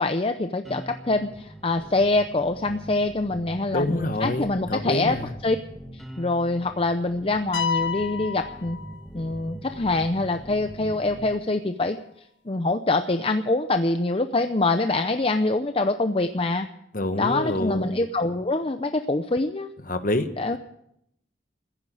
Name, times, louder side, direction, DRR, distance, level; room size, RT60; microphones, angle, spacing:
voice 1, 0.0-5.2 5.4-5.6 5.9-8.8 9.1-12.0 12.5-16.7 17.2-19.7 20.4-20.6, left 2 dB, 30° left, 8 dB, 0.6 m, -25 dB
sound 1, 0.6-11.3, right 1 dB, ahead, 1.5 m, -42 dB
voice 2, 3.7-5.3 16.9-18.0 19.8-20.3, left 1 dB, 45° left, 9 dB, 1.3 m, -27 dB
sound 2, 7.5-9.4, left 7 dB, 75° left, 1.4 m, -30 dB
15.0 x 10.5 x 8.6 m, 0.77 s
head